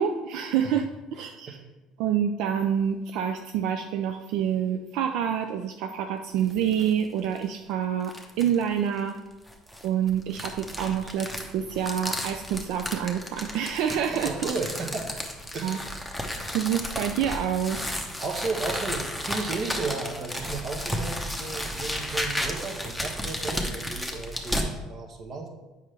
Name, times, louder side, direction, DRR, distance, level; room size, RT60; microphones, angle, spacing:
voice 1, 0.0-1.6 2.0-9.2 9.8-14.6 15.6-15.8 16.5-17.8, right 8 dB, 75° right, 6 dB, 0.4 m, -27 dB
voice 2, 1.2-1.6 14.1-15.2 15.5-15.9 18.2-25.5, right 3 dB, 45° right, 3 dB, 1.1 m, -34 dB
sound 1, 6.4-6.9 7.4-7.5 8.0-8.6 9.5-24.7, equal, ahead, 0.9 m, -33 dB
7.2 x 5.3 x 3.3 m, 1.1 s
cardioid pair, 110°, 0 cm